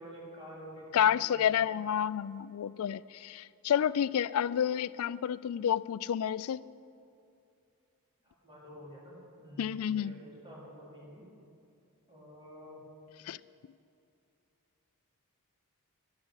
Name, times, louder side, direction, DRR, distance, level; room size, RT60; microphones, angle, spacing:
voice 1, 0.0-1.8 8.2-11.2 12.1-12.8, equal, 25° right, -6 dB, 4.2 m, -49 dB
voice 2, 0.9-6.6 9.6-10.1 13.3-13.4, left 9 dB, 70° left, 18 dB, 0.3 m, -30 dB
12.5 x 12.0 x 6.4 m, 2.5 s
head